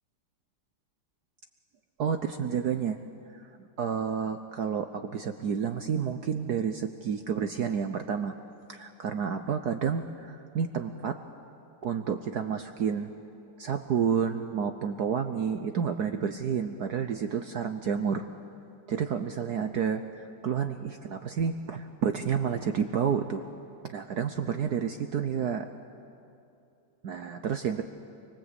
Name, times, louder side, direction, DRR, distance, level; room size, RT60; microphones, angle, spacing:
voice 1, 2.0-3.0 3.3-3.5 3.8-8.4 8.7-11.2 11.8-13.1 13.6-18.2 18.9-23.4 23.8-25.7 27.0-27.8, right 7 dB, 60° right, 7 dB, 1.1 m, -30 dB
26.0 x 24.0 x 8.2 m, 2.6 s
omnidirectional pair, 2.4 m